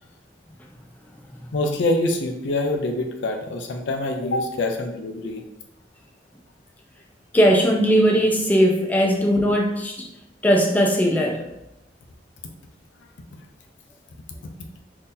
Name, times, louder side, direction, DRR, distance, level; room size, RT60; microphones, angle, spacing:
voice 1, 1.5-5.4, left 2 dB, 75° left, 4 dB, 0.5 m, -25 dB
voice 2, 7.3-10.1 10.4-11.4, equal, 10° left, 1 dB, 0.3 m, -19 dB
2.7 x 2.7 x 3.7 m, 0.89 s
head